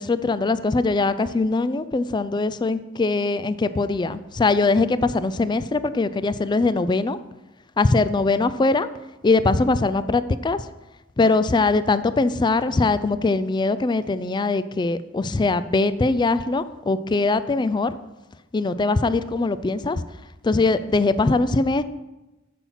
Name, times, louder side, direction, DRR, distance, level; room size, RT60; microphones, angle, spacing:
voice 1, 0.0-7.2 7.8-8.9 9.2-10.6 11.2-17.9 18.5-20.0 20.4-21.8, left 3 dB, 20° left, 14 dB, 0.3 m, -21 dB
8.4 x 7.1 x 5.7 m, 1.0 s
head